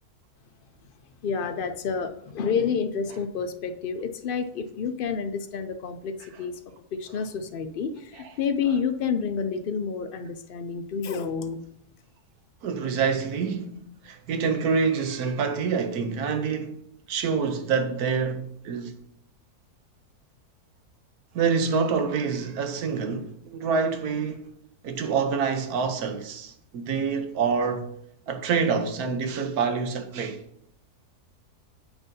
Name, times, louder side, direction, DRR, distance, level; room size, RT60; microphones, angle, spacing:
voice 1, 1.2-6.1 6.4-6.5 6.9-11.6, left 6 dB, 75° left, 0.5 m, -29 dB
voice 2, 12.6-16.8 17.1-18.9 21.3-24.5 24.8-27.9 28.3-30.4, right 5 dB, 75° right, 1.3 m, -27 dB
9.1 x 7.1 x 2.7 m
omnidirectional pair, 1.6 m